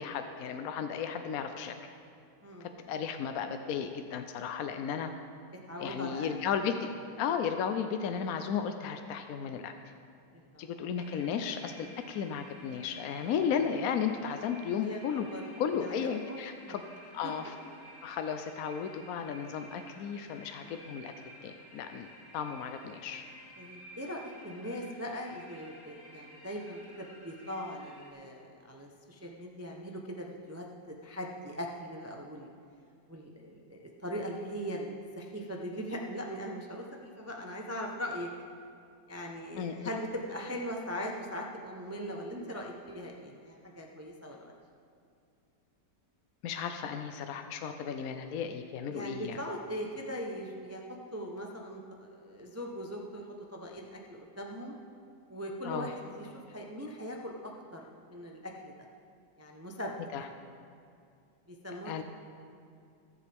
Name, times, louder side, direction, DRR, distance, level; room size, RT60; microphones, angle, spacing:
voice 1, 0.0-1.7 2.6-5.1 5.8-6.9 7.2-9.7 10.6-15.3 15.6-16.8 17.1-17.5 18.0-21.1 21.4-23.2 39.6-39.7 46.4-49.4 55.6-55.9 60.1-60.3 61.9-62.0, left 7 dB, 65° left, 7 dB, 0.9 m, -34 dB
voice 2, 2.4-2.8 5.7-6.3 10.3-10.7 14.8-15.4 15.7-16.7 17.2-17.3 20.6-20.8 23.6-30.7 31.0-32.5 33.1-38.3 39.1-44.5 48.9-53.2 53.5-54.7 55.3-58.7 59.4-59.9 61.5-62.0, equal, 20° right, 0 dB, 0.4 m, -40 dB
sound 1, 11.0-28.1, equal, 85° left, 2.9 m, -53 dB
21.5 x 7.4 x 3.5 m, 2.4 s
omnidirectional pair, 1.9 m